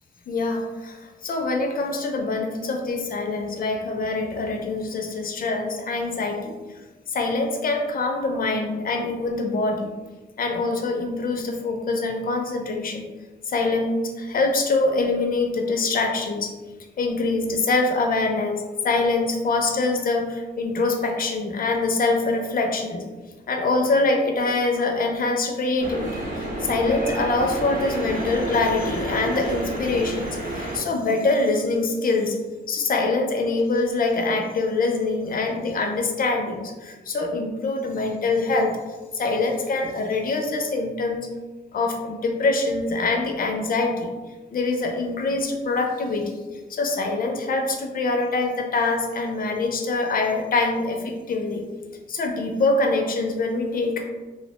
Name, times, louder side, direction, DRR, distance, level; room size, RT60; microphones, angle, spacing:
voice 1, 0.3-6.6 7.1-9.9 10.4-13.1 13.4-16.5 17.0-23.1 23.5-32.4 32.7-38.8 39.1-41.3 41.7-44.1 44.5-46.4 46.7-51.7 52.1-54.1, left 3 dB, 45° left, 3 dB, 0.4 m, -24 dB
sound 1, 25.8-30.8, right 1 dB, 45° right, 0.8 m, -30 dB
2.7 x 2.0 x 2.9 m, 1.2 s
wide cardioid pair, 155°, 20 cm